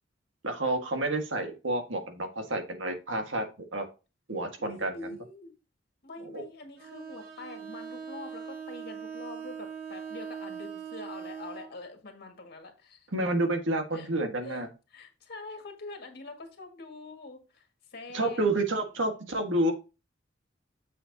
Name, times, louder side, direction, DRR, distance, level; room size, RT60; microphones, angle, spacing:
voice 1, 0.4-3.4 3.7-3.8 4.3-5.1 6.3-6.4 13.1-14.7 18.1-19.7, right 2 dB, 85° right, 5 dB, 1.6 m, -29 dB
voice 2, 4.6-5.5 6.0-13.1 13.9-14.1 14.4-14.6 14.9-18.5, left 3 dB, 55° left, 3 dB, 2.0 m, -45 dB
Bowed string instrument, 6.8-11.8, right 7 dB, 55° right, 1.2 m, -41 dB
7.5 x 6.7 x 2.7 m, 0.30 s
head